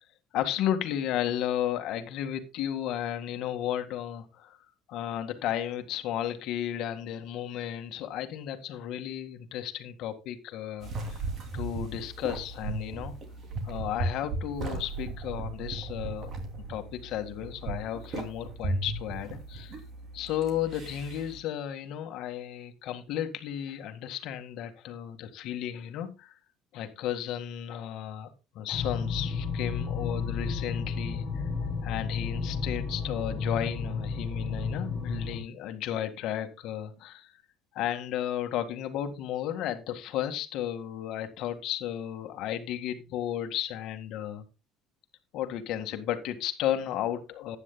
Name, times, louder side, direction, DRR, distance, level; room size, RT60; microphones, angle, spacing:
voice 1, 0.3-4.6 4.9-10.9 11.5-13.1 13.6-16.3 16.7-19.8 20.1-26.3 26.7-31.2 31.8-37.3 37.8-44.4 45.3-47.6, left 11 dB, 55° left, 8 dB, 1.9 m, -33 dB
sound 1, 10.8-21.4, right 2 dB, 35° right, 2.8 m, -36 dB
sound 2, 28.7-35.4, left 5 dB, 30° left, 3.1 m, -32 dB
15.0 x 9.9 x 2.3 m, 0.27 s
cardioid pair, 160°, 0 cm